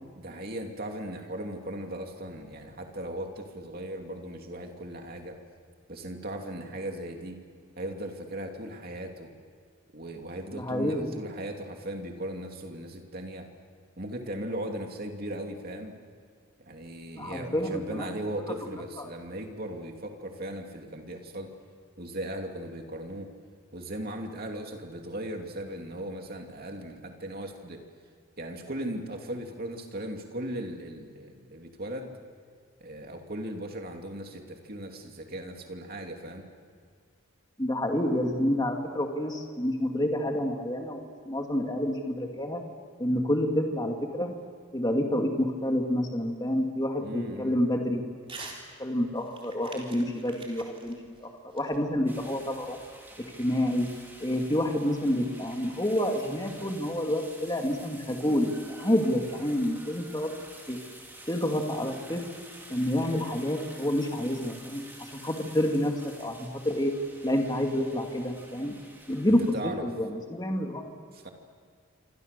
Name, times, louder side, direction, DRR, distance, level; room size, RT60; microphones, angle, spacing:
voice 1, 0.1-5.4 5.9-7.4 7.8-9.3 9.9-13.5 14.0-16.0 16.6-21.5 22.0-23.3 23.7-27.8 28.4-32.1 32.8-36.4 47.0-47.6 69.3-69.9 71.1-71.3, right 1 dB, 45° right, 3 dB, 2.7 m, -37 dB
voice 2, 10.5-11.2 17.2-18.2 37.6-42.6 43.0-44.3 44.7-48.5 48.8-52.8 53.4-53.9 54.2-60.3 60.7-60.8 61.3-62.2 62.7-65.9 66.2-66.9 67.2-68.7 69.1-69.4 69.8-70.9, left 1 dB, 20° left, 2 dB, 2.3 m, -28 dB
Crumpling crinkling / Tearing, 48.2-48.6 48.9-52.3, right 4 dB, 25° right, 3.9 m, -46 dB
sound 1, 52.1-69.5, right 1 dB, 10° right, 3.8 m, -49 dB
27.5 x 26.5 x 6.8 m, 2.1 s
head